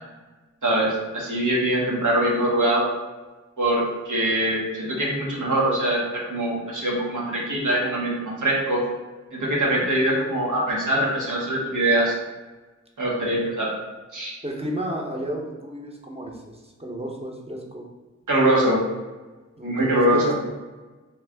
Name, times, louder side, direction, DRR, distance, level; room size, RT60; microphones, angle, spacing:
voice 1, 0.6-2.9 3.6-8.8 9.3-12.1 13.0-13.7 14.1-14.3 18.3-18.8 19.6-20.3, right 1 dB, 90° right, -4 dB, 1.0 m, -23 dB
voice 2, 14.4-17.9 19.6-20.3, equal, 20° right, -1 dB, 0.7 m, -32 dB
3.2 x 2.3 x 3.4 m, 1.2 s
wide cardioid pair, 40°, 30 cm